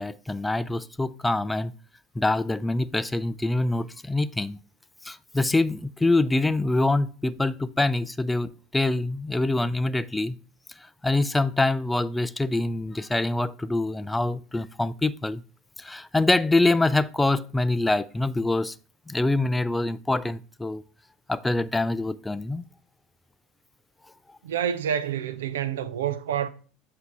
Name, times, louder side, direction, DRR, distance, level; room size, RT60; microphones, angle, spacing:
voice 1, 0.0-1.7 2.2-4.6 5.0-10.4 10.8-15.4 15.8-18.8 19.1-20.8 21.3-22.6, left 2 dB, 10° left, 0.4 m, -25 dB
voice 2, 24.4-26.5, right 9 dB, 85° right, 0.5 m, -28 dB
8.0 x 2.8 x 4.7 m
hypercardioid pair, 85°, 0 cm